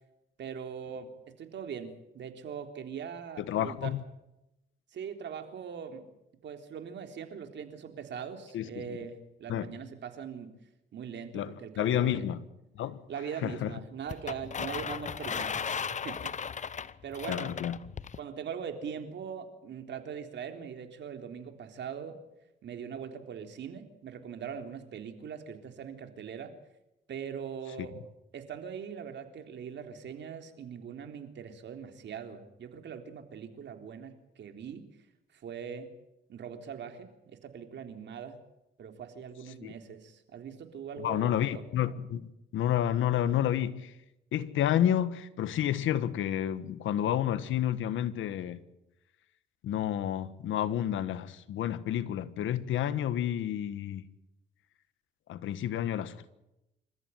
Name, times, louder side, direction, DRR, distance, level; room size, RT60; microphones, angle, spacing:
voice 1, 0.4-1.1 1.4-3.9 4.9-6.0 6.4-10.5 10.9-12.2 13.1-16.5 17.0-17.6 18.2-22.2 22.6-26.5 27.1-27.9 28.3-34.8 35.3-35.9 36.3-38.4 38.8-41.6, right 7 dB, 65° right, 3.7 m, -41 dB
voice 2, 3.4-4.0 8.5-8.7 9.5-9.7 11.3-12.4 12.7-13.0 13.4-13.7 17.3-17.8 27.8-27.9 39.6-39.7 41.0-43.9 44.3-48.6 49.6-54.0 55.3-56.3, left 11 dB, 80° left, 1.5 m, -30 dB
sound 1, 14.1-18.2, left 6 dB, 35° left, 0.9 m, -36 dB
27.5 x 14.5 x 9.4 m
cardioid pair, 90°, 20 cm